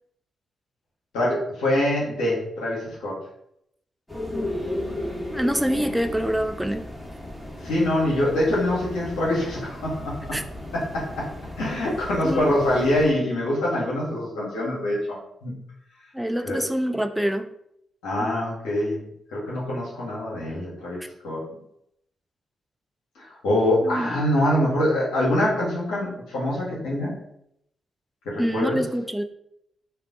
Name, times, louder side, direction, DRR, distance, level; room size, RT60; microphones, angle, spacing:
voice 1, 1.1-3.2 7.6-10.2 10.7-11.3 11.6-15.5 16.4-16.6 18.0-19.0 19.3-21.4 23.2-27.1 28.3-28.8, left 1 dB, 80° left, -6 dB, 0.8 m, -24 dB
sound 1, 4.1-13.1, left 1 dB, 15° left, 1.3 m, -35 dB
voice 2, 5.3-6.9 10.3-10.4 12.1-12.6 16.1-17.5 18.2-18.3 21.0-21.1 23.8-24.1 28.4-29.2, equal, 5° right, 8 dB, 0.3 m, -26 dB
2.3 x 2.3 x 3.6 m, 0.74 s
hypercardioid pair, 40°, 0 cm